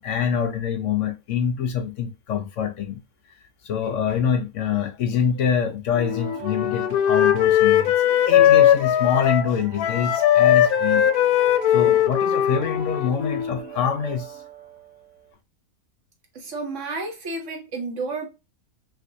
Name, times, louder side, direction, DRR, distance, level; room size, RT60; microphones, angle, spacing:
voice 1, 0.0-3.0 3.6-11.1 11.7-14.4, left 7 dB, 65° left, 0.9 m, -25 dB
sound 1, 5.9-15.3, right 7 dB, 75° right, 1.4 m, -39 dB
Wind instrument woodwind instrument, 6.0-9.5 9.8-13.6, left 11 dB, 90° left, 1.1 m, -19 dB
voice 2, 16.3-18.3, right 3 dB, 60° right, 1.3 m, -31 dB
5.9 x 2.6 x 2.6 m
omnidirectional pair, 1.5 m